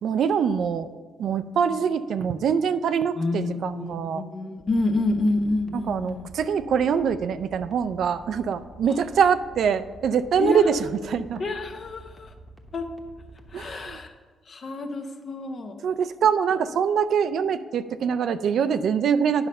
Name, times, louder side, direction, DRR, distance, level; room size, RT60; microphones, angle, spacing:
voice 1, 0.0-0.9 1.2-4.2 5.7-11.4 13.5-14.0 15.8-19.5, right 7 dB, 65° right, 11 dB, 0.4 m, -24 dB
voice 2, 3.2-6.2 10.4-10.7 11.4-12.3 12.7-12.9 13.5-14.1 14.5-15.7, left 2 dB, 45° left, 6 dB, 0.9 m, -28 dB
sound 1, 4.6-14.0, right 1 dB, 5° right, 1.0 m, -47 dB
9.3 x 5.4 x 5.3 m, 1.4 s
cardioid pair, 90°, 0 cm